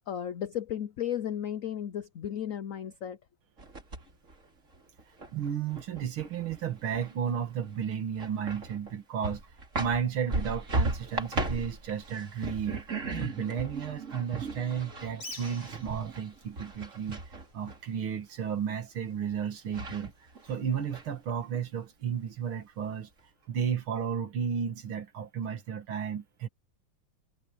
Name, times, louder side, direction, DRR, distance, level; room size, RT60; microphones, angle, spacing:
voice 1, 0.1-3.2, left 10 dB, 90° left, 0.7 m, -34 dB
sound 1, 3.6-4.3 4.7-7.3 7.6-7.7 8.1-9.0 9.2-17.8 19.3-19.4 19.7-20.5 20.9-21.6, right 2 dB, 35° right, 3.3 m, -36 dB
voice 2, 5.3-9.4 9.8-12.8 13.2-17.2 17.5-20.1 20.5-23.1 23.5-26.5, right 8 dB, 75° right, 2.7 m, -33 dB
Bird, 15.1-21.7, left 2 dB, 60° left, 6.2 m, -52 dB
omnidirectional pair, 2.3 m